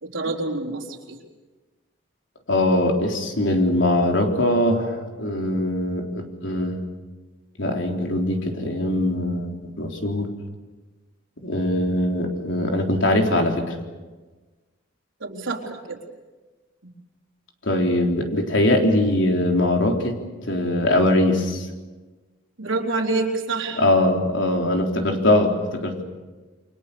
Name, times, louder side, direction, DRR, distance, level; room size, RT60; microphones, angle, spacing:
voice 1, 0.0-1.2 15.2-16.0 22.6-23.8, right 3 dB, 85° right, 1 dB, 3.9 m, -27 dB
voice 2, 2.5-6.8 7.6-10.3 11.4-13.7 17.6-20.1 20.5-21.7 23.8-26.0, left 1 dB, 75° left, 2 dB, 3.8 m, -21 dB
28.5 x 24.5 x 7.0 m, 1.3 s
head